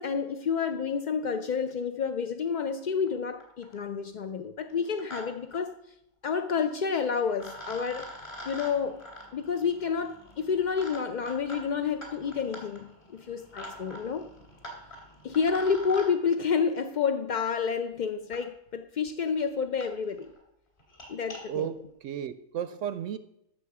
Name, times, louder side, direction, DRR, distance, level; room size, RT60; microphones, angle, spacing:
voice 1, 0.0-5.7 6.2-8.1 8.4-9.0 9.3-14.3 15.2-20.3 21.1-21.7, left 6 dB, 55° left, 0.5 m, -29 dB
sound 1, 3.1-3.2 3.4-3.9 4.7-5.2 5.5-5.6 6.9-7.0 7.4-16.1 17.4-17.5 18.3-18.4 19.1-19.2 19.4-19.5 19.8-19.9 20.2-20.4 20.8-21.4, equal, 40° left, 3.0 m, -45 dB
voice 2, 21.4-23.2, right 9 dB, 70° right, 0.9 m, -34 dB
14.5 x 6.3 x 4.8 m
omnidirectional pair, 1.4 m